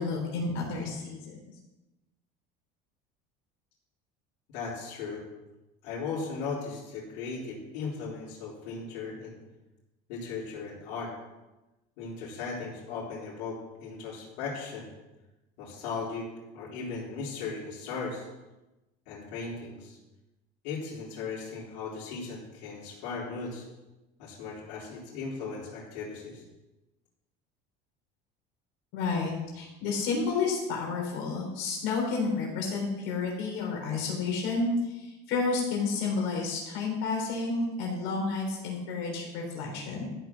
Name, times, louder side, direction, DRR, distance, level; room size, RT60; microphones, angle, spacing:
voice 1, 0.0-1.4 28.9-40.1, left 4 dB, 65° left, -1 dB, 3.8 m, -30 dB
voice 2, 4.5-5.2 5.8-9.4 10.1-11.1 12.0-14.9 15.6-16.3 16.5-18.3 19.1-20.0 20.6-23.7 24.2-26.4, left 4 dB, 85° left, -7 dB, 4.0 m, -37 dB
13.5 x 6.2 x 7.1 m, 1.0 s
cardioid pair, 130°, 21 cm